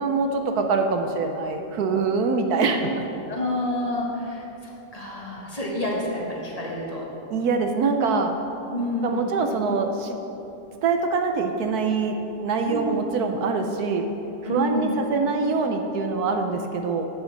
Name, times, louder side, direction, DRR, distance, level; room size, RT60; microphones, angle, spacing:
voice 1, 0.0-3.0 7.3-8.4 9.0-10.2 10.8-14.1 14.4-17.1, right 4 dB, 65° right, 5 dB, 1.0 m, -24 dB
voice 2, 3.3-4.4 4.9-7.1 8.7-9.2 12.6-12.9 14.4-14.9, left 1 dB, 20° left, -3 dB, 1.4 m, -28 dB
9.0 x 7.2 x 6.7 m, 3.0 s
omnidirectional pair, 2.1 m